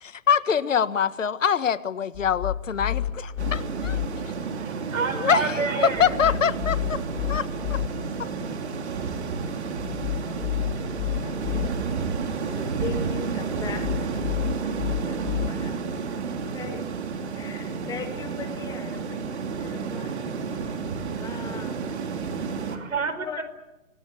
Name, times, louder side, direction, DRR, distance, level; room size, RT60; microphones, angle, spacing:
voice 1, 0.0-4.0 5.1-7.0 7.3-7.8 8.2-8.3, left 7 dB, 70° left, 14 dB, 1.6 m, -24 dB
sound 1, 2.1-4.1 5.9-7.9 9.8-11.7 13.6-15.5, left 11 dB, 25° left, 2.3 m, -30 dB
sound 2, 3.4-22.8, right 5 dB, 55° right, 3.2 m, -31 dB
voice 2, 4.6-6.2 22.4-23.4, right 5 dB, 80° right, 11 dB, 4.8 m, -29 dB
voice 3, 10.1-11.7 12.4-14.3 15.1-16.1 16.4-16.9 17.3-20.9 21.2-21.8 22.9-23.4, left 5 dB, 10° left, 5 dB, 2.7 m, -40 dB
26.0 x 20.5 x 9.3 m, 0.97 s
hypercardioid pair, 155°, 40 cm